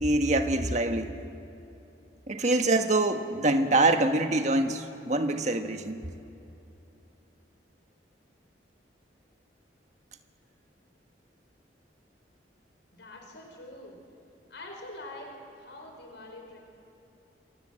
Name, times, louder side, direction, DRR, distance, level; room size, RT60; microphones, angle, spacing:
voice 1, 0.0-1.1 2.3-6.0, right 2 dB, 40° right, 6 dB, 1.5 m, -25 dB
voice 2, 12.9-14.0 14.5-15.3 15.6-16.6, left 2 dB, 75° left, 1 dB, 5.1 m, -44 dB
28.0 x 26.0 x 7.8 m, 2.9 s
head